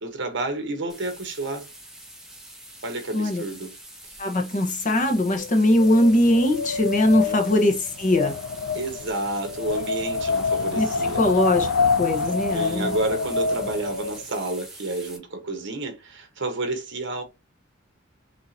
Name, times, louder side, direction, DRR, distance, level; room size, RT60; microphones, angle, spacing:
voice 1, 0.0-1.7 2.8-3.8 7.3-7.6 8.7-11.2 12.5-17.2, right 2 dB, 60° right, 1.3 m, -30 dB
sound 1, 0.9-15.2, right 1 dB, 5° right, 1.2 m, -44 dB
voice 2, 3.1-3.4 4.2-8.3 10.8-10.9 11.2-12.9, left 1 dB, 40° left, 1.1 m, -21 dB
Wind, 5.0-14.2, left 4 dB, 80° left, 0.5 m, -27 dB
6.5 x 3.0 x 2.8 m
head